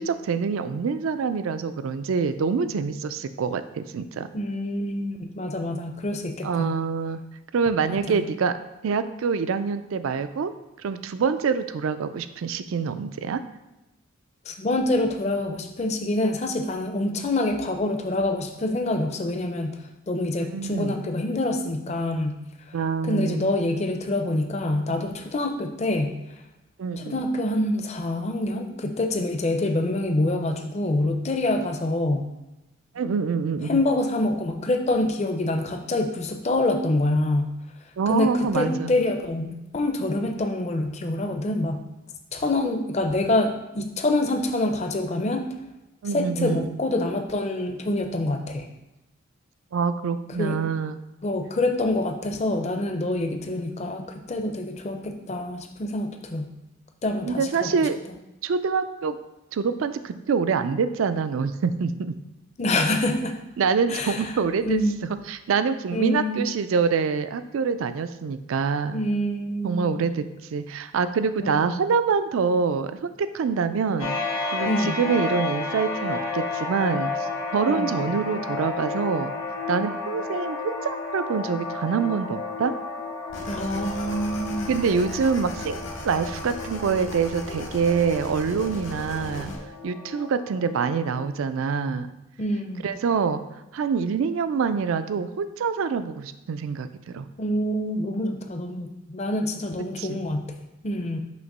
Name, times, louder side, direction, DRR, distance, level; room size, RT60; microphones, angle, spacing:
voice 1, 0.0-4.3 6.4-7.2 7.5-8.6 8.8-10.5 10.8-13.4 20.5-20.9 22.7-23.5 26.8-27.2 32.9-33.8 38.0-38.9 46.0-46.7 49.7-51.0 57.2-58.0 58.4-59.2 59.5-62.1 63.6-69.0 69.6-70.3 70.5-74.2 74.5-79.3 79.7-82.7 84.7-85.8 86.0-89.5 89.8-92.1 92.8-93.4 93.7-97.3 100.0-100.3, right 5 dB, 75° right, 11 dB, 0.4 m, -25 dB
voice 2, 4.3-6.8 7.8-8.2 14.5-22.4 23.0-26.2 27.0-32.3 33.7-37.5 38.1-41.8 42.3-45.4 46.1-48.6 50.4-50.6 51.2-56.5 57.0-57.8 62.6-63.3 63.9-64.2 64.7-65.0 65.9-66.4 68.9-70.1 71.4-71.8 74.7-75.0 77.7-78.0 83.5-84.7 92.4-92.9 97.4-100.5 100.8-101.2, left 1 dB, 30° left, 5 dB, 0.5 m, -26 dB
sound 1, 74.0-91.2, left 3 dB, 90° left, 1.2 m, -32 dB
sound 2, 83.3-89.6, left 1 dB, 60° left, 0.9 m, -37 dB
6.2 x 2.9 x 5.3 m, 0.98 s
head